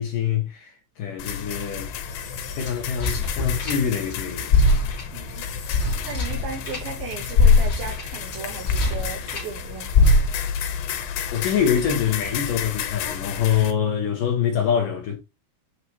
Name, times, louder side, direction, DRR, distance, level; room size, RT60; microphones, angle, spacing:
voice 1, 0.0-1.9 2.6-4.7 5.9-6.0 10.9-15.2, left 8 dB, 65° left, 2.3 m, -25 dB
sound 1, 1.2-13.7, left 8 dB, 85° left, 3.2 m, -32 dB
sound 2, 1.8-4.1 4.4-9.5 9.9-10.6, left 3 dB, 50° left, 1.6 m, -22 dB
voice 2, 5.1-5.4 5.7-10.3, right 5 dB, 75° right, 2.4 m, -36 dB
8.2 x 2.9 x 4.6 m
omnidirectional pair, 5.0 m